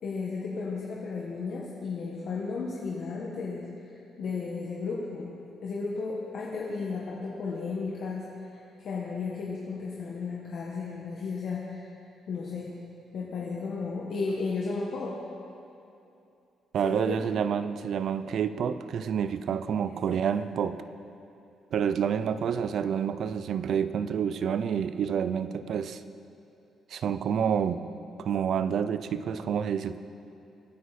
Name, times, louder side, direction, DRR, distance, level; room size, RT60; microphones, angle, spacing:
voice 1, 0.0-5.3 5.6-11.9 12.3-12.7 13.1-15.2 16.8-17.3 19.9-20.0, left 4 dB, 65° left, -4 dB, 1.6 m, -34 dB
voice 2, 16.7-20.8 21.7-26.0 26.9-27.8 28.2-30.0, right 7 dB, 65° right, 13 dB, 0.6 m, -28 dB
23.5 x 9.4 x 4.3 m, 2.7 s
cardioid pair, 90°, 0 cm